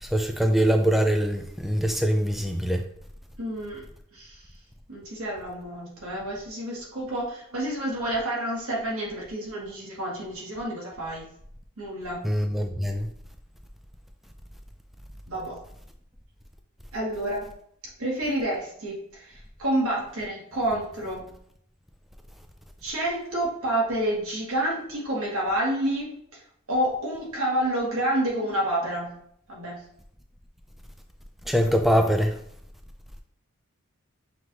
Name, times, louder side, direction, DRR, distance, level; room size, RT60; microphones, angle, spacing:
voice 1, 0.0-2.8 12.2-13.1 31.5-32.4, equal, ahead, 0.3 m, -23 dB
voice 2, 3.4-3.8 4.1-4.5 4.9-11.2 11.8-12.2 15.3-15.6 16.9-17.5 18.0-21.3 22.8-26.4 26.7-29.1 29.5-29.8, right 1 dB, 75° right, 1.6 m, -29 dB
5.8 x 2.5 x 3.1 m
head